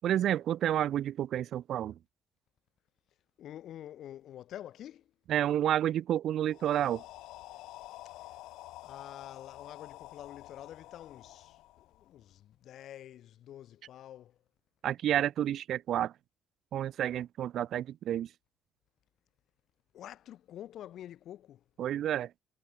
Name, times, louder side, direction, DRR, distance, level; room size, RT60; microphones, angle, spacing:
voice 1, 0.0-2.0 5.3-7.0 14.8-16.2 16.7-18.3 21.8-22.3, right 11 dB, 50° right, 1.2 m, -30 dB
voice 2, 3.4-5.1 8.8-14.4 19.9-21.6, left 11 dB, 50° left, 5.4 m, -47 dB
sound 1, 6.5-12.4, left 17 dB, 80° left, 4.1 m, -49 dB
cardioid pair, 165°, 0 cm